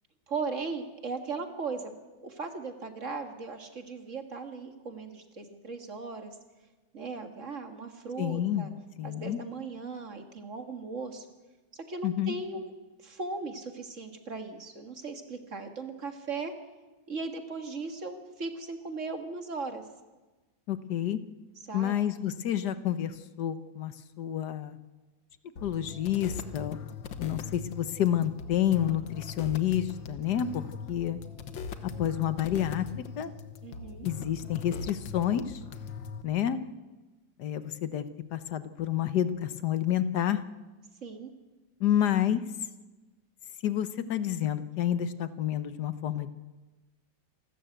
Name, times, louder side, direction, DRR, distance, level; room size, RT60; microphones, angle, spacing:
voice 1, 0.3-1.9 2.2-6.4 6.9-8.7 9.0-11.3 11.7-12.7 13.0-16.5 17.1-19.8 21.7-22.0 33.6-34.1 41.0-41.3, right 4 dB, 40° right, 6 dB, 2.0 m, -37 dB
voice 2, 8.2-8.7 9.0-9.4 12.0-12.3 20.7-21.2 21.7-24.8 25.6-26.8 27.2-30.6 30.9-31.2 31.8-33.3 34.0-35.6 36.2-36.6 37.4-38.1 38.3-40.4 41.8-42.4 43.6-46.3, left 11 dB, 65° left, 12 dB, 1.5 m, -29 dB
sound 1, 25.6-36.2, left 5 dB, 90° left, 1.9 m, -41 dB
28.0 x 13.5 x 8.0 m, 1.2 s
omnidirectional pair, 2.0 m